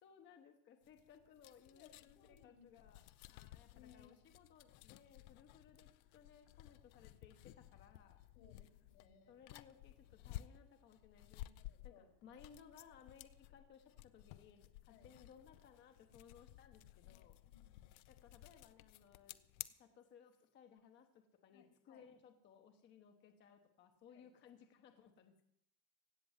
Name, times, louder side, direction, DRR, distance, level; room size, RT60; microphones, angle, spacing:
voice 1, 0.0-8.2 9.3-17.4 17.8-19.4 19.8-25.5, left 7 dB, 20° left, 5 dB, 0.9 m, -63 dB
sound 1, 0.8-19.7, left 16 dB, 55° left, 0.7 m, -56 dB
voice 2, 1.7-2.7 3.7-4.2 8.4-9.4 11.6-12.1 14.9-15.1 17.0-17.9 21.5-22.0 24.1-24.3, left 7 dB, 80° left, 5 dB, 4.0 m, -65 dB
16.5 x 6.7 x 9.2 m, 0.72 s
cardioid pair, 175°, 50 cm